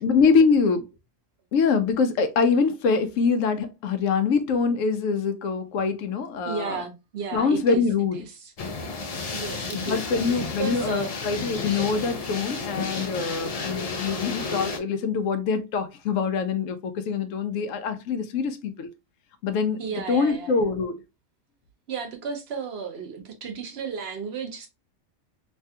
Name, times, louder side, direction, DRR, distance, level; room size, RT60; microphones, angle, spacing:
voice 1, 0.0-0.9 1.5-6.8 7.3-8.2 9.7-18.9 19.4-19.8 20.1-21.0, left 5 dB, 90° left, 1.0 m, -24 dB
voice 2, 6.4-7.8 8.1-8.5 9.3-11.2 19.8-20.6 21.9-24.7, right 5 dB, 60° right, 0.9 m, -34 dB
sound 1, 8.6-14.8, left 4 dB, 60° left, 0.3 m, -32 dB
3.2 x 2.3 x 2.7 m
omnidirectional pair, 1.3 m